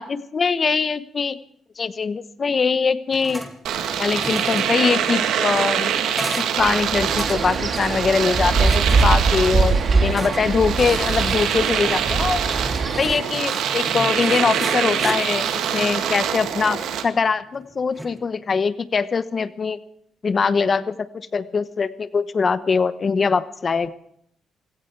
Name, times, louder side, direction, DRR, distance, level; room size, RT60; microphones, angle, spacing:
voice 1, 0.0-1.4 1.8-3.4 4.0-5.9 6.6-12.5 13.0-19.8 20.2-23.9, left 5 dB, 40° left, 14 dB, 1.0 m, -22 dB
sound 1, 3.1-3.5 3.8-18.2, right 1 dB, 10° right, 2.3 m, -35 dB
Domestic sounds home sounds, 3.7-17.1, right 8 dB, 80° right, 1.9 m, -24 dB
Wind, 6.6-13.1, right 4 dB, 40° right, 1.8 m, -22 dB
17.0 x 16.5 x 4.7 m, 0.73 s
cardioid pair, 90°, 0 cm